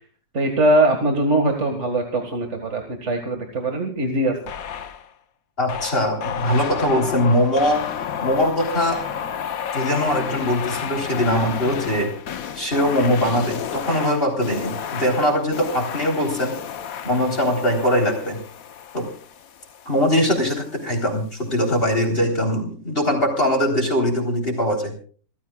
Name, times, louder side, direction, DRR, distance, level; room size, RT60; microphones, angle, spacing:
voice 1, 0.3-4.4, right 1 dB, 40° right, 4 dB, 2.2 m, -21 dB
sound 1, 4.5-5.1 5.7-20.4, left 8 dB, 60° left, 1.3 m, -31 dB
voice 2, 5.6-7.9 8.2-9.0 9.7-12.1 12.5-16.6 17.0-18.4 18.9-19.1 19.9-24.9, equal, 30° left, 3 dB, 3.9 m, -21 dB
29.0 x 14.0 x 2.3 m, 0.42 s
omnidirectional pair, 1.9 m